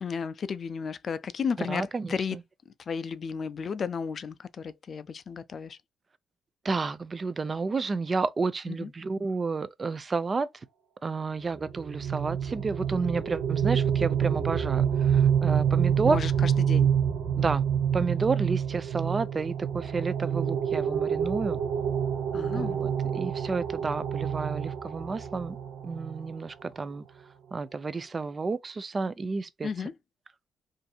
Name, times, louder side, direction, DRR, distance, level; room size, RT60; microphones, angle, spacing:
voice 1, 0.0-2.4 2.7-5.8 8.7-8.9 16.0-16.9 22.3-22.8 29.6-29.9, left 6 dB, 45° left, 0.3 m, -33 dB
voice 2, 1.6-2.4 6.6-10.5 11.0-16.2 17.4-17.6 17.9-21.6 22.5-25.6 25.8-27.0 27.5-29.7, right 4 dB, 35° right, 0.3 m, -31 dB
sound 1, 11.5-26.3, right 8 dB, 90° right, 0.6 m, -27 dB
2.6 x 2.5 x 2.2 m
cardioid pair, 90°, 0 cm